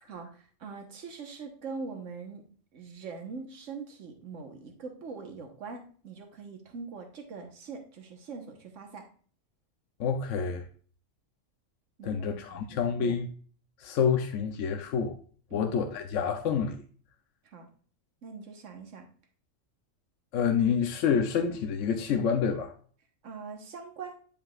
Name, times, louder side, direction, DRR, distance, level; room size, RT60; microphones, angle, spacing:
voice 1, 0.0-2.4 2.7-9.0 12.0-12.9 15.5-15.7 17.4-17.7 18.2-19.1 23.2-24.2, right 4 dB, 70° right, 1.5 m, -42 dB
voice 2, 10.0-10.6 12.0-13.3 13.8-15.2 15.5-16.8 20.3-22.7, left 6 dB, 75° left, 1.0 m, -28 dB
9.6 x 5.2 x 2.4 m
omnidirectional pair, 1.3 m